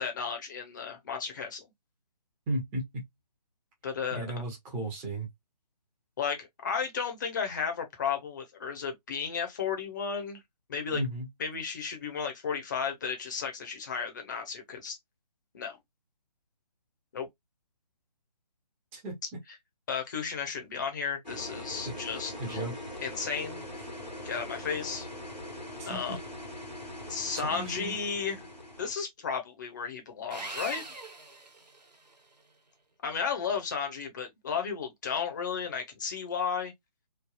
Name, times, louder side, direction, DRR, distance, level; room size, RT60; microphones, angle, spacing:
voice 1, 0.0-1.6 3.8-4.3 6.2-10.4 10.7-11.0 11.4-15.0 15.5-15.8 17.1-17.3 19.9-22.7 23.0-23.6 24.2-25.1 25.8-26.2 27.1-28.4 28.8-30.9 33.0-36.7, left 6 dB, 25° left, 0.8 m, -33 dB
voice 2, 2.5-3.0 4.1-5.3 10.9-11.3 18.9-19.1 21.9-22.0 22.4-22.7 25.8-26.2 27.4-27.9, right 1 dB, 10° right, 0.7 m, -34 dB
sound 1, 21.2-28.9, left 1 dB, 90° left, 1.3 m, -42 dB
Sawing, 30.3-32.2, right 2 dB, 75° right, 0.8 m, -41 dB
3.3 x 2.2 x 2.3 m
figure-of-eight pair, 145°, 21 cm